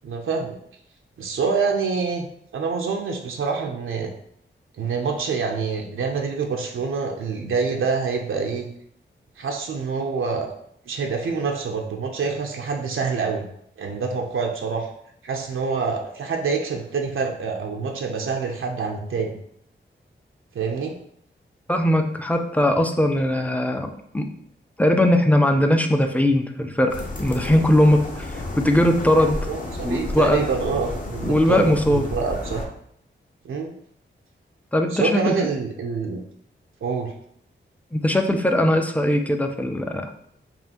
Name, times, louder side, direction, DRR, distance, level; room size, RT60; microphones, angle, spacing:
voice 1, 0.0-0.6 1.2-2.3 2.5-4.1 4.8-8.7 9.4-10.5 10.9-13.5 13.8-14.9 15.2-19.4 20.5-20.9 29.5-32.6 33.4-33.7 34.9-36.2 36.8-37.1, right 5 dB, 85° right, 2 dB, 0.5 m, -26 dB
voice 2, 21.7-24.2 24.8-26.9 27.2-29.4 29.8-30.4 31.2-32.1 34.7-35.3 37.9-40.1, left 1 dB, 5° left, 5 dB, 0.4 m, -20 dB
sound 1, 26.9-32.6, left 2 dB, 45° left, 0.8 m, -32 dB
5.5 x 2.4 x 2.8 m, 0.68 s
wide cardioid pair, 85°, 20 cm